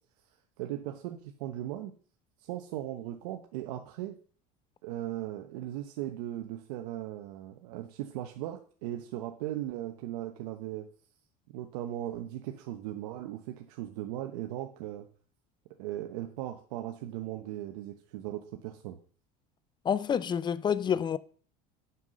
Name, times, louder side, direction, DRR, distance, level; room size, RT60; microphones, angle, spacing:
voice 1, 0.6-1.9 2.4-4.2 4.8-10.9 11.5-15.1 15.8-19.0, right 13 dB, 85° right, 1.0 m, -38 dB
voice 2, 19.8-21.2, left 8 dB, 25° left, 0.5 m, -28 dB
8.2 x 5.7 x 6.3 m
supercardioid pair, 125°, 19 cm